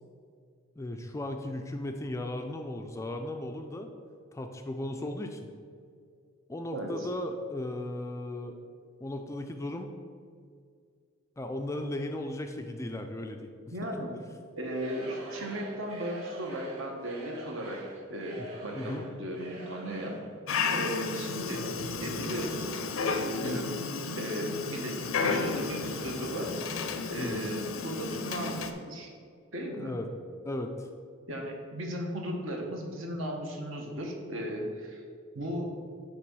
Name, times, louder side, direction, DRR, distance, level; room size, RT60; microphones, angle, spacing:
voice 1, 0.8-3.9 4.3-5.4 6.5-8.6 9.0-9.9 11.4-13.5 18.7-19.0 27.2-27.4 29.8-30.1 30.4-30.9, left 1 dB, 15° left, 5 dB, 0.3 m, -36 dB
voice 2, 6.7-7.1 13.7-14.1 14.6-17.8 18.1-20.2 20.7-21.6 22.0-22.8 23.4-23.8 24.2-26.6 27.1-29.1 29.5-29.9 31.3-35.0 35.3-35.7, equal, 65° right, 1 dB, 1.1 m, -36 dB
Singing / Crowd, 14.6-20.3, equal, 90° right, 1.6 m, -45 dB
Dog, 20.5-28.7, left 4 dB, 75° left, 0.5 m, -33 dB
6.0 x 4.0 x 6.0 m, 2.2 s
head